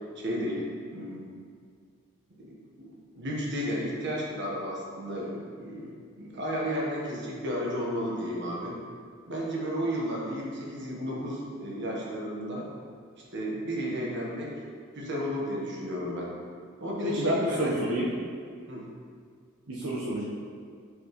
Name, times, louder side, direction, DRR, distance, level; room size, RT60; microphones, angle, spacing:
voice 1, 0.1-1.3 2.4-5.9 6.2-8.8 9.3-12.7 13.3-14.6 14.9-16.3 16.8-18.0 18.7-18.9, equal, 55° right, -3 dB, 1.2 m, -33 dB
voice 2, 17.0-18.1 19.7-20.2, equal, 80° right, -6 dB, 0.9 m, -28 dB
6.1 x 5.9 x 3.0 m, 2.1 s
head